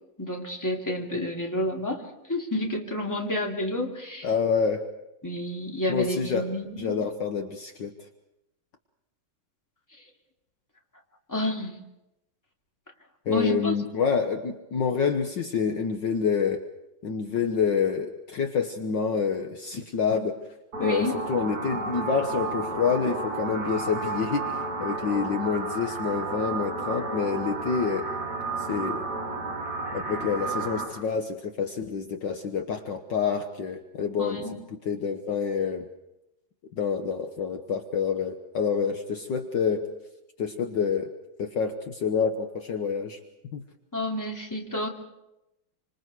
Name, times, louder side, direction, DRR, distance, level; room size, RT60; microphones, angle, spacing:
voice 1, 0.2-2.0 2.3-4.3 5.2-6.9 11.3-11.8 13.3-13.7 20.8-21.1 34.2-34.5 43.9-44.9, left 1 dB, 10° left, 0 dB, 2.6 m, -29 dB
voice 2, 4.2-4.8 5.9-6.5 6.8-7.9 13.2-16.6 17.0-20.4 20.8-28.1 28.6-29.1 29.9-35.9 36.7-39.9 40.4-41.1 41.4-43.2 43.5-43.6, left 6 dB, 60° left, 5 dB, 1.7 m, -27 dB
sound 1, 20.7-30.8, right 3 dB, 50° right, 6.7 m, -32 dB
27.5 x 25.5 x 4.7 m, 0.90 s
omnidirectional pair, 2.3 m